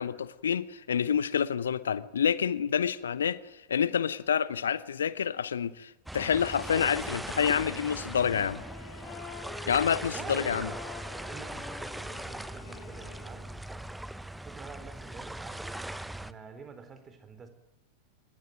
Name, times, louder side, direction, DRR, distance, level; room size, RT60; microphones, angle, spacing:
voice 1, 0.0-3.4 3.7-8.6 9.7-10.7, left 8 dB, 70° left, 0.9 m, -28 dB
sound 1, 6.1-16.3, right 1 dB, 5° right, 1.0 m, -40 dB
Sax Tenor - A minor, 6.9-13.5, left 7 dB, 40° left, 7.6 m, -47 dB
voice 2, 10.1-10.9 11.3-15.9 16.2-17.5, right 5 dB, 20° right, 4.1 m, -47 dB
25.0 x 21.5 x 9.2 m
figure-of-eight pair, 90°, 0 cm